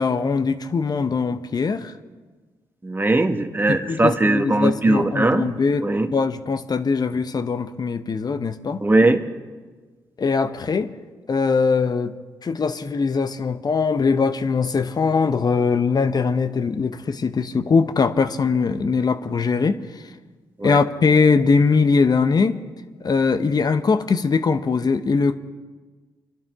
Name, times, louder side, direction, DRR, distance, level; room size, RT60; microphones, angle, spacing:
voice 1, 0.0-1.9 3.7-8.8 10.2-10.9 11.3-12.1 12.4-20.0 20.6-22.6 23.0-25.4, left 4 dB, 45° left, 10 dB, 0.9 m, -21 dB
voice 2, 2.8-5.5 5.8-6.1 8.8-9.2 20.6-20.8, right 2 dB, 20° right, 7 dB, 1.4 m, -19 dB
24.0 x 12.0 x 3.7 m, 1.3 s
hypercardioid pair, 45°, 9 cm